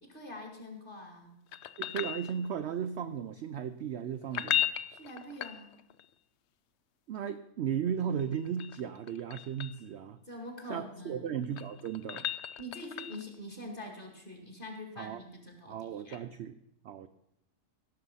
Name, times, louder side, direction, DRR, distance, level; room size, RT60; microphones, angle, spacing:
voice 1, 0.0-1.4 4.9-5.7 10.3-11.3 12.6-16.2, left 1 dB, 35° left, 3 dB, 2.4 m, -45 dB
sound 1, 1.5-2.7 4.2-6.1 8.2-9.8 11.3-13.4 16.1-16.2, left 11 dB, 70° left, 0.6 m, -36 dB
voice 2, 1.8-4.7 7.1-10.2 10.7-12.3 15.0-15.2 15.7-16.6 16.8-17.1, right 8 dB, 65° right, 9 dB, 0.7 m, -36 dB
16.5 x 6.7 x 5.6 m, 0.82 s
omnidirectional pair, 1.6 m